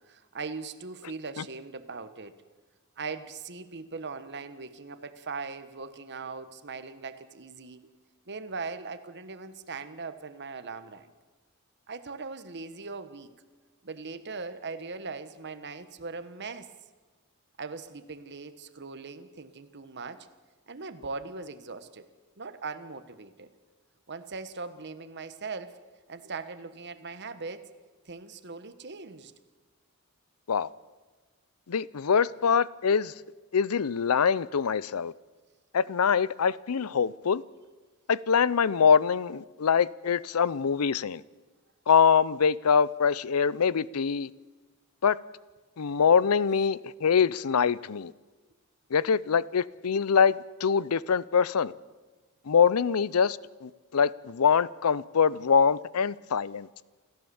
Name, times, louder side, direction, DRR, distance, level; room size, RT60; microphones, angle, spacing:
voice 1, 0.0-2.4 3.0-7.8 8.3-11.1 11.9-13.3 13.8-16.7 17.6-20.3 20.7-22.1 22.4-23.5 24.1-25.8 26.1-27.7 28.0-29.3, right 4 dB, 55° right, 1.3 m, -40 dB
voice 2, 31.7-33.1 33.5-35.1 35.7-37.4 38.1-41.2 41.9-44.3 45.0-45.2 45.8-48.1 48.9-51.7 52.5-56.7, left 6 dB, 85° left, 0.6 m, -24 dB
28.0 x 14.5 x 7.1 m
head